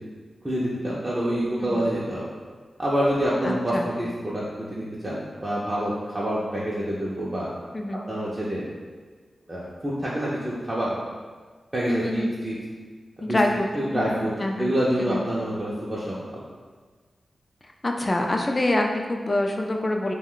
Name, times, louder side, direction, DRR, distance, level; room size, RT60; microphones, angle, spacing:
voice 1, 0.4-2.2 2.8-7.5 8.1-8.7 9.5-11.0 11.7-12.5 13.2-13.4 13.7-14.3 14.6-16.4, equal, 25° right, -8 dB, 0.5 m, -27 dB
voice 2, 3.4-3.9 7.7-8.0 11.9-12.3 13.2-15.2 17.8-20.1, left 1 dB, 35° left, 2 dB, 0.3 m, -26 dB
2.3 x 2.1 x 3.7 m, 1.5 s
cardioid pair, 60°, 0 cm